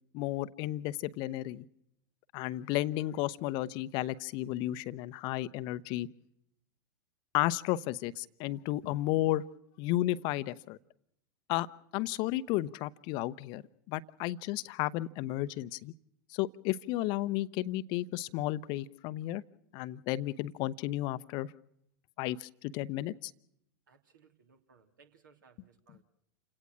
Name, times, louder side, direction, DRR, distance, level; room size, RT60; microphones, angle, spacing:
voice 1, 0.1-1.6 2.3-6.1 7.3-9.4 9.8-10.8 11.5-11.7 11.9-15.9 16.3-19.4 19.7-21.5 22.2-23.3, left 15 dB, 45° left, 15 dB, 0.8 m, -33 dB
voice 2, 23.9-26.0, right 5 dB, 70° right, 6 dB, 3.1 m, -63 dB
29.0 x 17.5 x 6.3 m, 0.76 s
figure-of-eight pair, 90°, 11 cm